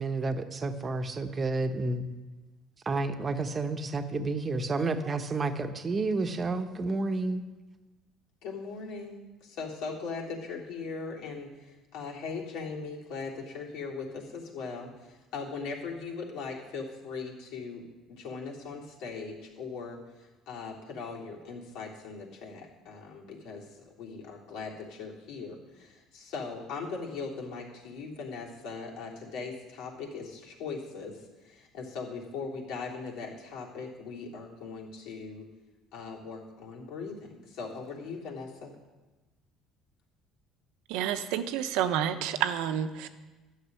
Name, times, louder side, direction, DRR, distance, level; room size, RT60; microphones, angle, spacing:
voice 1, 0.0-2.1 2.8-7.4, right 3 dB, 30° right, 8 dB, 1.0 m, -30 dB
voice 2, 8.4-17.8 18.1-35.5 35.9-38.8, left 4 dB, 75° left, -3 dB, 3.4 m, -39 dB
voice 3, 40.9-43.1, right 10 dB, 85° right, 10 dB, 0.9 m, -29 dB
12.5 x 6.6 x 9.6 m, 1.2 s
cardioid pair, 115°, 0 cm